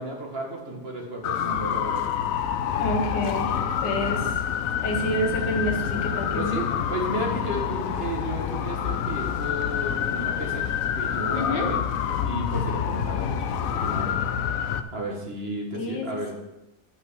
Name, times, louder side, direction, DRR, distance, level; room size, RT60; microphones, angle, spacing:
voice 1, 0.0-2.1 6.4-10.7 11.0-11.8 12.2-14.1 14.9-16.3, right 1 dB, 35° right, 0 dB, 1.7 m, -33 dB
sound 1, 1.2-14.8, left 8 dB, 65° left, 0.9 m, -27 dB
voice 2, 2.8-4.4 4.8-6.6 11.3-11.7 15.7-16.3, left 1 dB, 85° left, 3 dB, 2.0 m, -29 dB
8.9 x 5.9 x 6.2 m, 0.95 s
omnidirectional pair, 1.9 m